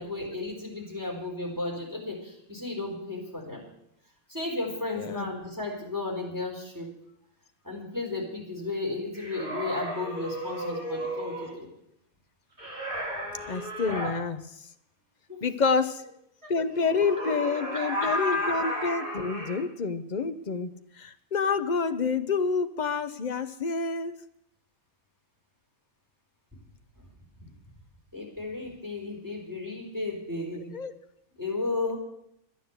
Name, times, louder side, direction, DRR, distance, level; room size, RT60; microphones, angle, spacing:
voice 1, 0.0-3.7 4.3-6.9 7.6-11.7 15.3-15.7 16.4-16.5 17.6-18.4 27.0-27.1 27.4-27.5 28.1-30.7 31.4-32.0, left 2 dB, 15° right, -1 dB, 4.1 m, -34 dB
voice 2, 5.0-5.3 13.5-14.7 15.4-16.0 16.5-24.1 30.7-30.9, left 5 dB, 40° left, 11 dB, 0.7 m, -28 dB
sound 1, 9.1-11.6 12.6-14.1 16.7-19.6, equal, 40° right, 4.3 m, -33 dB
12.0 x 9.8 x 8.1 m, 0.78 s
omnidirectional pair, 1.5 m